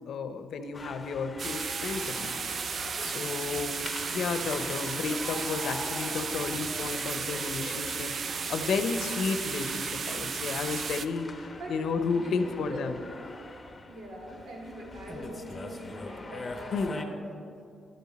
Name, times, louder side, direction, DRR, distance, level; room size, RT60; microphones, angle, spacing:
voice 1, 0.1-2.4 3.0-8.1 8.5-13.0 16.7-17.0, left 5 dB, 70° left, 9 dB, 0.7 m, -32 dB
sound 1, 0.7-17.0, left 2 dB, 25° left, 0.8 m, -43 dB
sound 2, 1.4-11.1, right 5 dB, 50° right, 0.4 m, -34 dB
voice 2, 12.1-12.8 13.9-17.2, right 1 dB, 80° right, -3 dB, 2.6 m, -42 dB
11.5 x 9.8 x 4.2 m, 2.4 s
cardioid pair, 115°, 0 cm